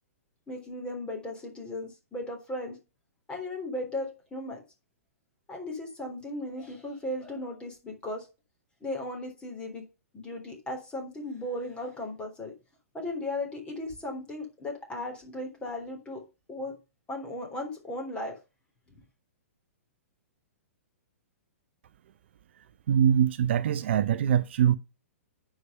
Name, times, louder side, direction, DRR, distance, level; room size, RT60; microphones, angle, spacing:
voice 1, 0.5-2.8 3.3-4.6 5.5-8.3 8.8-9.8 10.1-12.5 12.9-16.2 16.5-16.7 17.1-18.4, left 1 dB, 15° left, 3.6 m, -36 dB
voice 2, 22.9-24.8, right 9 dB, 50° right, 0.6 m, -23 dB
9.4 x 5.1 x 6.7 m
figure-of-eight pair, 115°, 8 cm